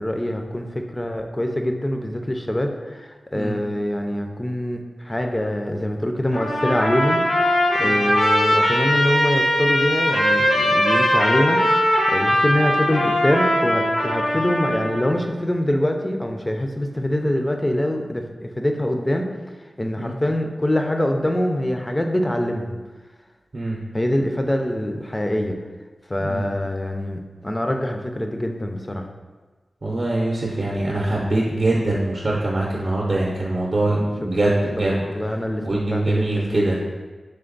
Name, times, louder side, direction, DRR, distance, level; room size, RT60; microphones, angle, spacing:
voice 1, 0.0-19.3 19.8-22.8 23.9-25.6 26.1-29.1 33.9-34.1 34.4-34.6 34.9-36.6, left 1 dB, 20° left, 4 dB, 0.4 m, -24 dB
Trumpet, 6.3-15.1, equal, 85° left, 1.2 m, -20 dB
voice 2, 29.8-35.0 35.6-36.8, right 2 dB, 50° right, -4 dB, 0.6 m, -23 dB
3.5 x 3.4 x 3.9 m, 1.3 s
wide cardioid pair, 85°, 0 cm